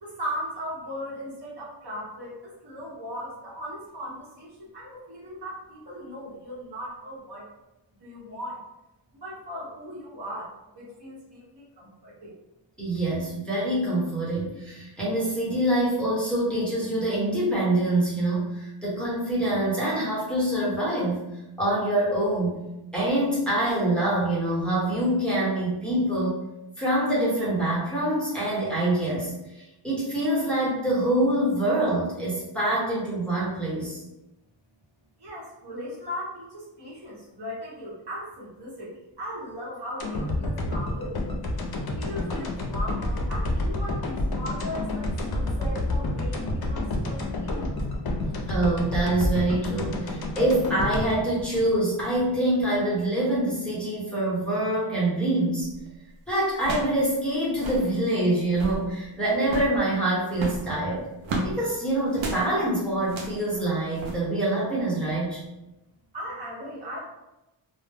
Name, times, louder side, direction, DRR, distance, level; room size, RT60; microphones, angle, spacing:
voice 1, 0.0-7.4 8.0-8.7 9.1-12.3 35.2-41.3 41.9-47.7 66.1-67.0, equal, 55° right, -6 dB, 0.9 m, -38 dB
voice 2, 12.8-21.2 21.6-22.6 22.9-26.3 26.8-29.3 29.8-34.0 48.5-55.7 56.3-61.1 61.4-65.4, right 1 dB, ahead, -7 dB, 0.9 m, -25 dB
sound 1, 40.0-52.2 52.6-52.7, left 1 dB, 55° left, 0.5 m, -29 dB
sound 2, 55.6-55.9 56.6-57.0 57.3-57.4 57.5-57.9 58.4-58.8 59.4-59.8 60.3-61.5 62.1-62.4 63.0-63.4 64.0-64.1, right 2 dB, 85° right, 0.6 m, -32 dB
2.1 x 2.1 x 3.3 m, 0.96 s
wide cardioid pair, 105°, 46 cm